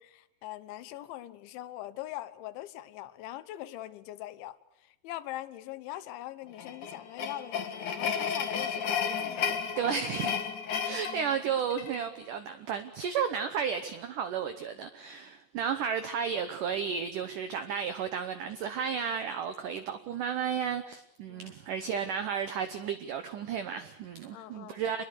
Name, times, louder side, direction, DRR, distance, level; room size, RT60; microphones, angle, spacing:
voice 1, 0.0-9.9 21.2-21.5 24.3-25.1, left 14 dB, 85° left, 3.4 m, -42 dB
sound 1, 6.5-12.1, left 7 dB, 55° left, 2.7 m, -33 dB
voice 2, 9.8-10.4 10.8-25.1, right 7 dB, 80° right, 1.8 m, -33 dB
27.5 x 21.5 x 6.7 m
omnidirectional pair, 5.2 m